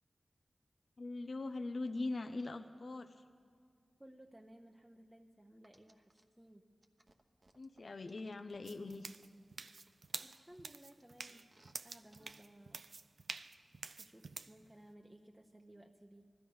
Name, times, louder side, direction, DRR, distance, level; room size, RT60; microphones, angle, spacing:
voice 1, 1.0-3.2 7.5-9.1, left 2 dB, 65° left, 8 dB, 0.6 m, -42 dB
voice 2, 4.0-6.7 10.2-11.5 11.8-12.9 14.0-16.3, right 1 dB, 15° right, 2 dB, 0.8 m, -59 dB
sound 1, 5.6-6.2 6.8-9.2 9.7-11.8 12.1-12.4 12.9-13.0, right 2 dB, 45° right, 1.0 m, -67 dB
sound 2, 8.6-14.6, right 4 dB, 75° right, 0.4 m, -48 dB
20.0 x 13.0 x 5.5 m, 2.1 s
cardioid pair, 50°, 0 cm